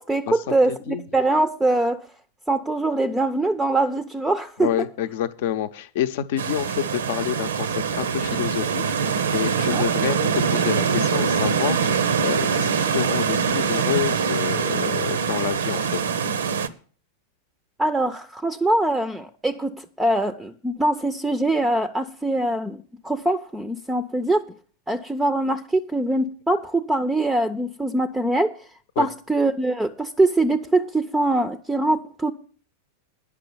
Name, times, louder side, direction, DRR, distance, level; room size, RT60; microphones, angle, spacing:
voice 1, 0.0-2.1 2.5-4.9 9.6-9.8 17.8-24.4 24.9-28.5 29.0-32.3, right 2 dB, 5° right, 10 dB, 0.6 m, -23 dB
voice 2, 0.7-1.0 4.6-16.0 29.0-29.1, left 11 dB, 50° left, 11 dB, 0.7 m, -28 dB
sound 1, 6.4-16.7, right 6 dB, 65° right, 0.7 m, -23 dB
9.9 x 6.1 x 8.7 m, 0.43 s
figure-of-eight pair, 90°, 0 cm